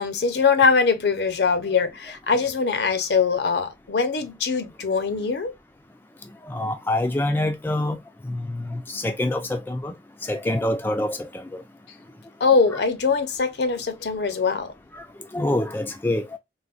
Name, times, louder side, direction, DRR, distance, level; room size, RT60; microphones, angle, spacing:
voice 1, 0.0-5.5 12.4-14.7, left 5 dB, 70° left, 0.6 m, -22 dB
voice 2, 6.5-8.0 8.2-9.9 10.2-11.6 14.9-15.1 15.3-16.2, left 1 dB, 10° left, 0.3 m, -26 dB
3.8 x 2.1 x 2.3 m
head